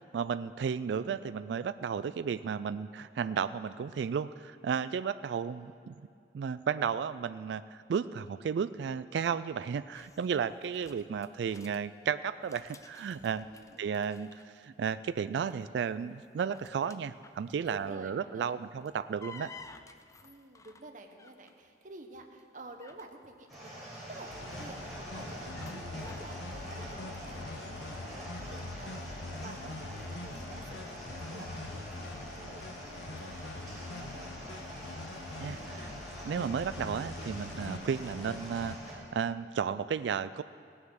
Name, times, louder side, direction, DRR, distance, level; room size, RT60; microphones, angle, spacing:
voice 1, 0.0-6.0 6.3-13.4 13.8-19.5 35.4-35.9 36.2-40.4, right 7 dB, 80° right, 14 dB, 0.3 m, -33 dB
voice 2, 5.2-5.8 13.4-14.1 15.5-15.6 17.7-18.6 20.2-30.8 31.2-34.6, right 2 dB, 45° right, 4 dB, 1.2 m, -51 dB
sound 1, 9.9-11.8 12.3-14.9 15.2-15.6 16.2-18.0 18.6-21.6 22.1-26.4, left 3 dB, 20° left, 0.5 m, -54 dB
sound 2, 23.5-38.9, equal, ahead, 4.7 m, -45 dB
sound 3, 24.3-38.8, left 2 dB, 80° left, 0.8 m, -43 dB
16.5 x 10.0 x 6.4 m, 2.4 s
head